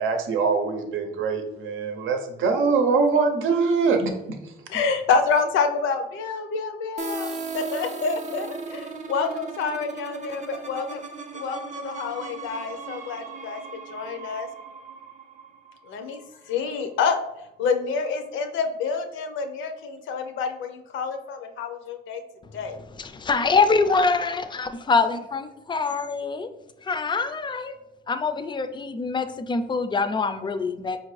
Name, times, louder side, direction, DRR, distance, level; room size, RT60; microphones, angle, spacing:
voice 1, 0.0-4.1, right 4 dB, 80° right, 5 dB, 0.7 m, -23 dB
voice 2, 4.7-11.0 11.3-13.6 13.9-14.5 15.9-16.2 16.5-17.2 17.6-22.2 22.5-22.8, left 5 dB, 80° left, 6 dB, 0.6 m, -27 dB
sound 1, 7.0-16.6, right 3 dB, 40° right, 0.5 m, -37 dB
voice 3, 22.8-26.5 26.8-27.8 28.1-31.0, left 4 dB, 25° left, 10 dB, 0.4 m, -24 dB
4.9 x 2.5 x 3.1 m, 0.98 s
cardioid pair, 90°, 20 cm